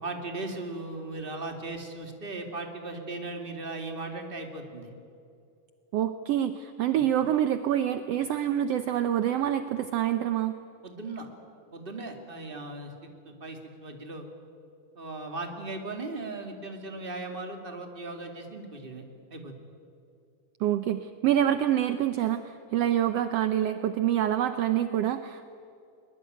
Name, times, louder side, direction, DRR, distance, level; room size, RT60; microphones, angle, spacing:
voice 1, 0.0-4.9 6.9-7.0 10.8-11.3 11.7-12.9 13.2-14.3 14.9-19.0 19.3-19.5, right 2 dB, 20° right, 4 dB, 2.3 m, -37 dB
voice 2, 5.9-10.5 20.6-25.5, right 11 dB, 75° right, 10 dB, 1.4 m, -26 dB
23.0 x 22.0 x 9.2 m, 2.5 s
omnidirectional pair, 3.7 m